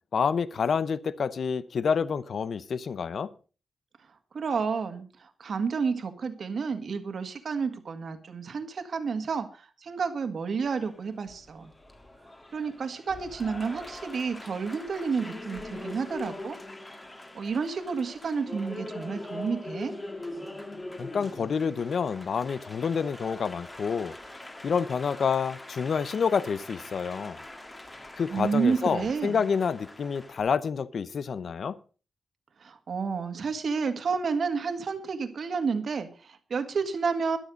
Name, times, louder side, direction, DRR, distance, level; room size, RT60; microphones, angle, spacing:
voice 1, 0.1-3.3 21.0-24.1 24.6-27.4 28.2-31.8, left 6 dB, 55° left, 0.7 m, -28 dB
voice 2, 4.3-11.7 12.5-16.6 17.3-19.9 28.3-29.4 32.6-37.4, right 5 dB, 50° right, 1.8 m, -30 dB
Applause, 10.7-30.4, left 2 dB, 15° left, 1.7 m, -43 dB
12.5 x 12.0 x 5.2 m
wide cardioid pair, 180°, 0 cm